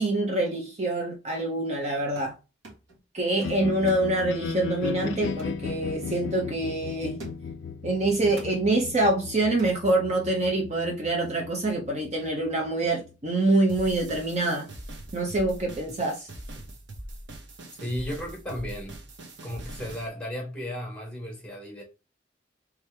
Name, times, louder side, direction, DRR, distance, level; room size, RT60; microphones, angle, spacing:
voice 1, 0.0-2.3 3.1-7.2 7.8-14.7 15.1-16.3, right 2 dB, 35° right, 0.6 m, -25 dB
sound 1, 2.1-2.4 2.6-3.0 3.4-4.8 5.4-5.6 6.1-6.3 7.2-7.6 8.4-8.7 9.6-9.8, right 2 dB, 85° right, 1.6 m, -46 dB
sound 2, 3.4-13.5, left 5 dB, 65° left, 0.3 m, -37 dB
sound 3, 13.7-20.1, right 1 dB, 65° right, 0.9 m, -42 dB
voice 2, 17.8-19.0 19.4-21.8, equal, 5° left, 1.5 m, -34 dB
3.4 x 3.2 x 3.3 m
head